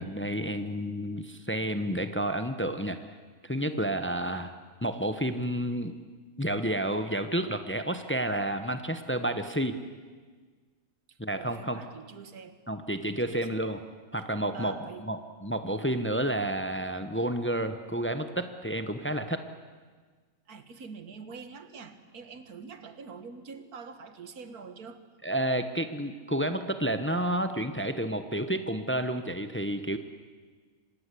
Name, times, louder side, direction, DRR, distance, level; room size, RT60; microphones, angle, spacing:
voice 1, 0.0-3.0 3.4-4.5 4.8-5.9 6.4-9.8 11.2-11.8 12.7-13.8 14.1-14.7 15.0-19.4 25.2-30.0, right 1 dB, 10° left, 9 dB, 1.0 m, -30 dB
voice 2, 11.1-12.6 13.1-13.6 14.5-15.0 20.5-25.0, right 5 dB, 90° right, 10 dB, 2.0 m, -45 dB
26.0 x 19.5 x 8.5 m, 1.5 s
omnidirectional pair, 1.5 m